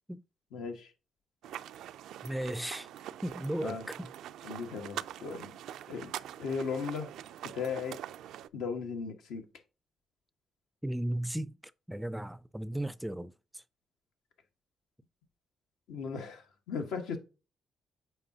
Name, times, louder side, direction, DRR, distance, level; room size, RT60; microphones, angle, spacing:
voice 1, 0.5-0.9 3.6-3.9 4.4-5.5 5.9-6.1 6.4-7.1 7.5-8.0 8.5-9.4 15.9-17.2, left 5 dB, 85° left, 1.3 m, -36 dB
sound 1, 1.4-8.5, right 11 dB, 80° right, 0.3 m, -44 dB
voice 2, 2.2-2.9 3.2-4.1 10.8-11.6 11.9-13.6, right 1 dB, 5° right, 0.3 m, -35 dB
7.8 x 4.7 x 2.7 m
cardioid pair, 90°, 0 cm